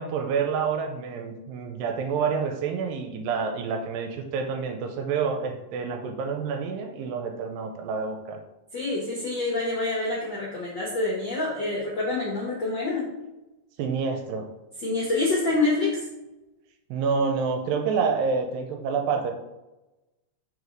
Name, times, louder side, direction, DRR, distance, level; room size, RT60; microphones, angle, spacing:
voice 1, 0.0-8.4 13.8-14.5 16.9-19.3, right 5 dB, 80° right, 4 dB, 2.3 m, -28 dB
voice 2, 8.7-13.1 14.8-16.0, left 2 dB, 65° left, -5 dB, 1.1 m, -27 dB
5.0 x 4.7 x 5.2 m, 1.0 s
omnidirectional pair, 4.3 m